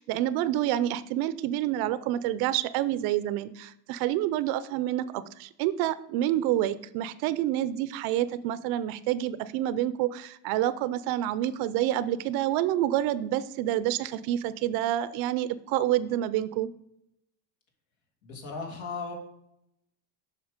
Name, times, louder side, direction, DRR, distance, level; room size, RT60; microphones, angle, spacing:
voice 1, 0.0-16.7, right 13 dB, 60° right, 16 dB, 0.6 m, -28 dB
voice 2, 18.2-19.1, left 4 dB, 70° left, 1 dB, 2.6 m, -36 dB
8.0 x 5.9 x 5.1 m, 0.79 s
supercardioid pair, 130°, 41 cm